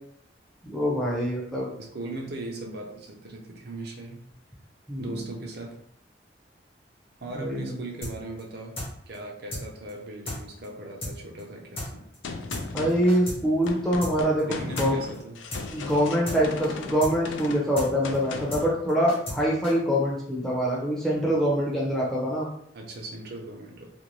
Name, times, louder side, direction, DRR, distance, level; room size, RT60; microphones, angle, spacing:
voice 1, 0.6-1.7 4.9-5.2 7.3-7.7 12.7-15.0 15.7-22.5, equal, ahead, -6 dB, 0.6 m, -25 dB
voice 2, 1.8-4.2 5.0-5.7 7.2-8.8 9.1-12.0 14.4-15.4 22.7-23.9, right 2 dB, 60° right, 0 dB, 0.6 m, -38 dB
sound 1, 8.0-8.1 8.4-8.5 8.8-8.9 9.1-9.2 9.5-9.6 9.9-10.0 10.3-10.4 10.6-10.7 11.0-11.1 11.4-11.5 11.8-11.9 12.1-12.2 12.5-12.6 12.9-13.4 13.6-13.7 14.0-14.1 14.4-14.5 14.8-14.9 15.1-15.2 15.5-15.6 15.9-16.0 16.3-16.4 16.6-16.7 17.0-17.1 17.4-17.5 17.8-17.9 18.1-18.2 18.5-18.6 18.9-19.4 19.6-19.7, left 1 dB, 30° left, 0.8 m, -34 dB
Gunshot gunfire, 12.2-18.7, left 4 dB, 85° left, 0.4 m, -37 dB
2.5 x 2.1 x 3.0 m, 0.70 s
head